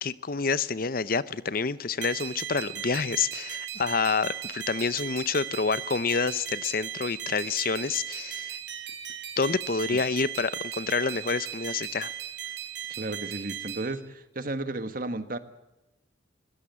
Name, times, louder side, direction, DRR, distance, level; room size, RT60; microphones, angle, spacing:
voice 1, 0.0-8.6 9.4-12.2, left 5 dB, 50° left, 0.7 m, -28 dB
sound 1, 2.0-13.9, right 11 dB, 70° right, 3.9 m, -37 dB
voice 2, 12.9-15.4, right 2 dB, 50° right, 1.6 m, -33 dB
21.5 x 16.5 x 8.3 m
head